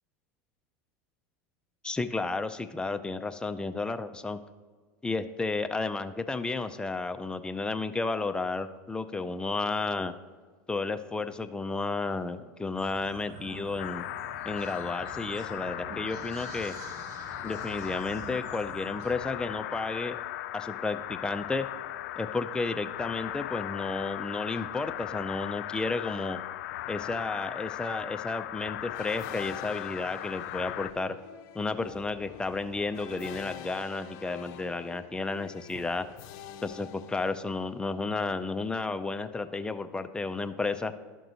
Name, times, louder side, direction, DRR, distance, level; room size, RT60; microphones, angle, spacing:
voice 1, 1.8-4.4 5.0-10.1 10.7-14.1 14.5-16.8 17.4-20.2 20.5-21.7 22.2-26.4 26.9-31.2 31.5-36.1 36.6-40.9, left 3 dB, 10° left, 9 dB, 0.5 m, -32 dB
sound 1, 12.8-19.1, right 3 dB, 45° right, 1.1 m, -46 dB
sound 2, 13.8-30.9, left 15 dB, 80° left, 0.4 m, -38 dB
sound 3, 28.9-37.8, left 10 dB, 55° left, 0.7 m, -46 dB
12.0 x 6.1 x 4.0 m, 1.5 s
supercardioid pair, 120°, 9 cm